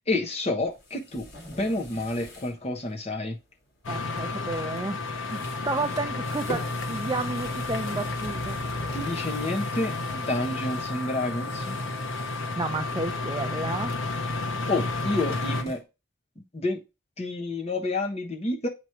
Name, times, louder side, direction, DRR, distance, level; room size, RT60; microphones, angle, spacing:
voice 1, 0.1-3.4 8.9-11.8 14.7-15.8 16.4-16.8 17.2-18.7, left 2 dB, 30° left, 1.1 m, -29 dB
sound 1, 0.6-2.6 2.9-3.0 4.7-4.9 5.2-12.6 13.0-13.4 13.7-15.8, equal, 50° left, 2.0 m, -42 dB
sound 2, 3.8-15.6, left 3 dB, 80° left, 0.7 m, -31 dB
voice 2, 3.9-5.0 5.3-8.6 12.6-14.0, right 2 dB, 20° right, 0.4 m, -31 dB
7.9 x 3.1 x 4.5 m
head